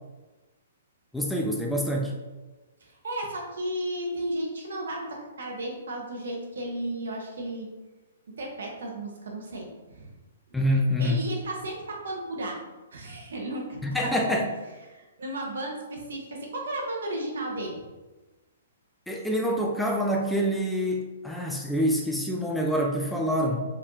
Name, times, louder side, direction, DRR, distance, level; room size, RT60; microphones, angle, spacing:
voice 1, 1.1-2.1 10.5-11.2 13.8-14.5 19.1-23.7, equal, ahead, -1 dB, 0.3 m, -26 dB
voice 2, 2.8-7.7 8.4-10.1 11.0-12.6 12.9-14.4 14.9-17.8, right 1 dB, 80° right, 0 dB, 1.2 m, -34 dB
4.8 x 3.5 x 2.9 m, 1.2 s
hypercardioid pair, 165°, 0 cm